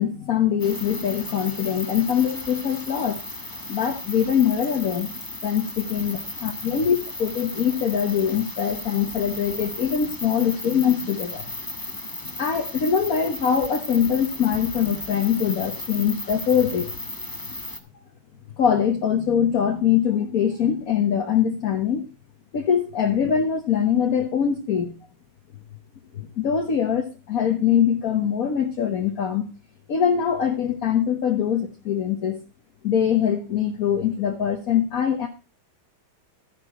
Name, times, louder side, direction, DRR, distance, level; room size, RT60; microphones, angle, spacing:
voice 1, 0.0-3.2 3.7-5.1 5.4-11.5 12.2-16.9 18.6-22.0 22.5-24.9 26.1-29.5 29.9-32.4 32.8-35.3, left 8 dB, 45° left, 4 dB, 1.5 m, -23 dB
sound 1, 0.6-17.8, left 2 dB, 15° left, 1.0 m, -35 dB
12.0 x 10.0 x 4.4 m, 0.28 s
omnidirectional pair, 2.4 m